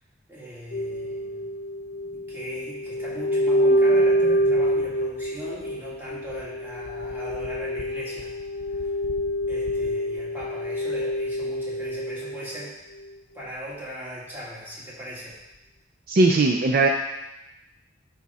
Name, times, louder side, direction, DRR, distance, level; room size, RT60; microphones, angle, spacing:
voice 1, 0.3-1.5 2.1-8.4 8.7-8.9 9.5-12.7 13.3-15.4, equal, 10° right, -7 dB, 2.1 m, -39 dB
sound 1, 0.7-12.7 13.0-13.1, equal, 50° left, 0.7 m, -26 dB
voice 2, 16.1-16.9, right 3 dB, 50° right, 3 dB, 0.5 m, -19 dB
10.0 x 3.6 x 4.2 m, 0.96 s
head